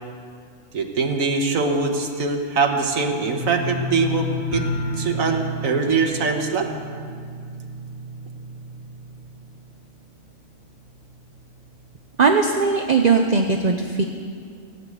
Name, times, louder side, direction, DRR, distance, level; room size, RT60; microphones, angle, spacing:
voice 1, 0.7-4.7 5.0-6.7, right 4 dB, 85° right, 4 dB, 1.7 m, -22 dB
sound 1, 3.4-10.2 10.5-11.1 11.5-11.6, left 1 dB, 50° left, 3.3 m, -31 dB
voice 2, 12.2-14.0, right 4 dB, 40° right, 4 dB, 0.7 m, -19 dB
16.5 x 8.0 x 9.2 m, 2.2 s
omnidirectional pair, 1.4 m